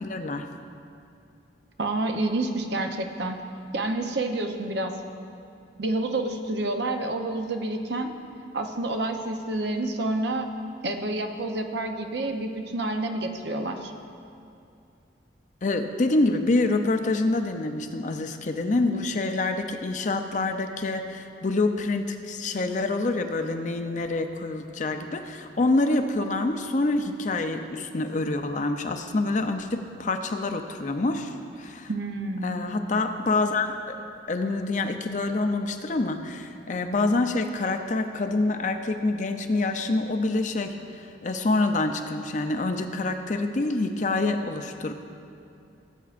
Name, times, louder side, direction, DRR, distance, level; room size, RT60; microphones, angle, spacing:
voice 1, 0.0-0.5 15.6-31.3 31.6-31.9 32.4-34.0 34.3-44.9, left 2 dB, 40° left, 6 dB, 0.5 m, -26 dB
voice 2, 1.8-3.4 3.7-5.0 5.8-8.1 8.5-10.5 10.8-13.9 31.9-32.6, right 2 dB, 60° right, 5 dB, 0.7 m, -28 dB
17.5 x 8.2 x 2.5 m, 2.6 s
head